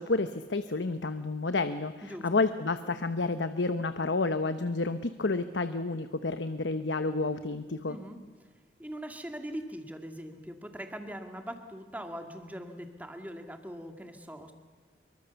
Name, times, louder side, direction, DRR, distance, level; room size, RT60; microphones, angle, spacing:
voice 1, 0.0-8.0, left 3 dB, 85° left, 10 dB, 1.0 m, -30 dB
voice 2, 8.8-14.5, equal, 10° right, 5 dB, 2.2 m, -41 dB
25.5 x 23.5 x 7.0 m, 1.5 s
head